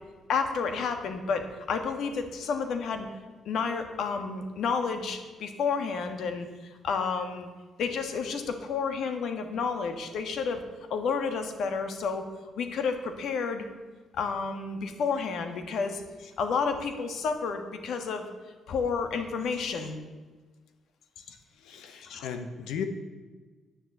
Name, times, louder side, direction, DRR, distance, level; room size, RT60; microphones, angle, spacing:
voice 1, 0.3-3.1 3.4-6.5 6.8-7.5 7.8-10.6 10.9-12.3 12.6-13.6 14.1-18.3 18.7-20.0 21.3-21.4 21.7-22.3, left 5 dB, 70° left, 6 dB, 1.5 m, -30 dB
voice 2, 21.5-22.8, left 7 dB, 90° left, 7 dB, 1.1 m, -36 dB
9.9 x 7.0 x 7.9 m, 1.3 s
cardioid pair, 90°, 0 cm